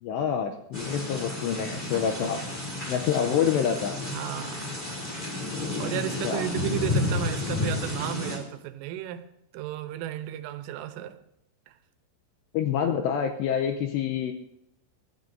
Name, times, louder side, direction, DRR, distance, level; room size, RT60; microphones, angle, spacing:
voice 1, 0.0-2.4 2.9-3.9 6.1-6.4 12.5-14.3, left 8 dB, 85° left, 2.5 m, -27 dB
sound 1, 0.7-8.4, left 2 dB, 15° left, 2.4 m, -31 dB
voice 2, 4.1-4.8 5.8-9.3 9.5-11.2 11.7-11.8, right 11 dB, 85° right, 3.4 m, -33 dB
23.0 x 14.5 x 2.7 m
omnidirectional pair, 5.7 m